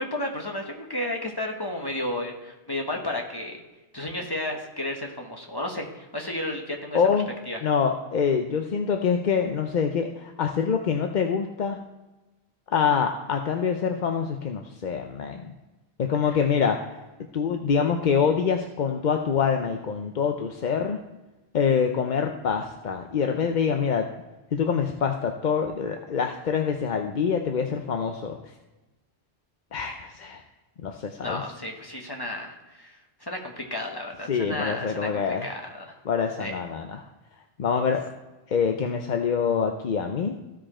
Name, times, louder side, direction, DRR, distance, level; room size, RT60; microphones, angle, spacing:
voice 1, 0.0-3.6 3.9-7.0 7.5-7.6 31.2-36.0 36.4-36.6, left 1 dB, 20° left, 1 dB, 1.2 m, -33 dB
voice 2, 6.9-7.3 7.6-11.8 12.7-15.5 16.0-17.0 17.3-21.0 21.5-24.1 24.5-28.4 29.7-30.4 30.8-31.4 34.3-35.5 36.0-37.0 37.6-38.0 38.5-40.4, left 6 dB, 50° left, 4 dB, 0.7 m, -25 dB
15.0 x 5.1 x 4.3 m, 1.1 s
omnidirectional pair, 1.1 m